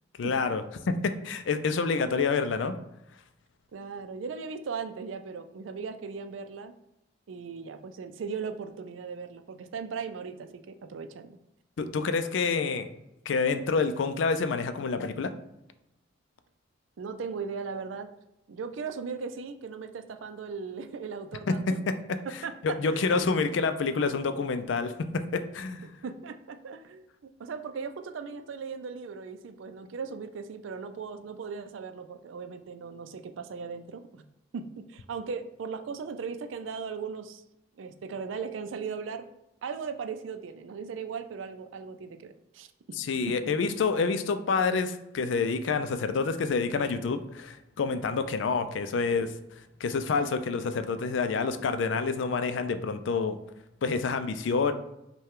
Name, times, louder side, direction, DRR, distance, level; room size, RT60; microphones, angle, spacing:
voice 1, 0.2-2.8 11.8-12.9 13.3-15.3 21.5-22.2 22.6-25.9 43.0-49.3 49.8-53.4 53.8-54.7, left 4 dB, 70° left, 10 dB, 0.4 m, -28 dB
voice 2, 3.7-6.7 7.3-11.3 17.0-18.1 18.5-21.8 22.2-23.2 25.8-34.2 34.5-37.4 37.8-39.2 39.6-42.7 43.3-43.4, right 5 dB, 90° right, 9 dB, 0.4 m, -38 dB
5.4 x 2.3 x 3.6 m, 0.88 s
head